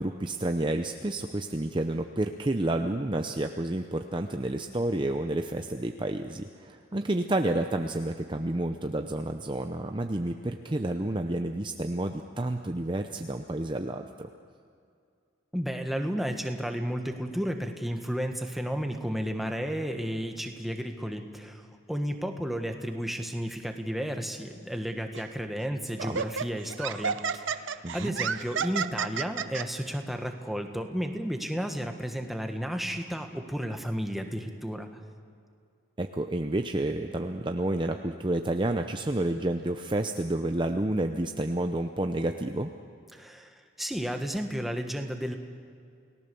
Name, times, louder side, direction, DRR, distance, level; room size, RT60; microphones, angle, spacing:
voice 1, 0.0-14.3 26.0-26.2 27.8-28.2 36.0-42.7, right 1 dB, 25° right, 6 dB, 0.6 m, -30 dB
voice 2, 15.5-21.6 21.9-34.9 43.1-43.5 43.8-45.4, equal, ahead, 4 dB, 1.4 m, -32 dB
Laughter, 25.1-25.4 26.0-29.6, right 6 dB, 65° right, 0.8 m, -31 dB
29.5 x 18.0 x 7.0 m, 2.3 s
head